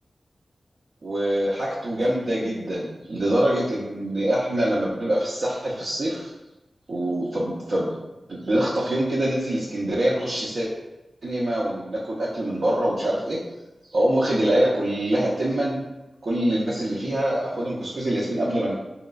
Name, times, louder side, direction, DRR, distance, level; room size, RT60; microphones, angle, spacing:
voice 1, 1.0-6.3 6.9-7.9 8.3-10.7 11.2-13.4 13.9-15.8 16.2-18.8, right 1 dB, 75° right, -7 dB, 0.5 m, -24 dB
3.1 x 2.9 x 2.3 m, 1.0 s
cardioid pair, 55°, 0 cm